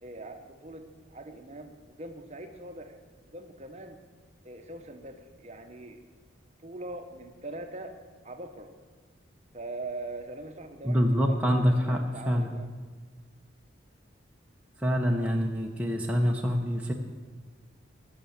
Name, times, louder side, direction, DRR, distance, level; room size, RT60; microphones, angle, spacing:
voice 1, 0.0-3.0 3.3-4.0 4.4-6.1 6.6-7.9 8.2-8.7 9.5-12.7, right 2 dB, 35° right, 6 dB, 0.9 m, -42 dB
voice 2, 10.8-12.5 14.8-16.9, equal, 5° right, 0 dB, 0.7 m, -26 dB
15.0 x 6.6 x 7.2 m, 1.5 s
head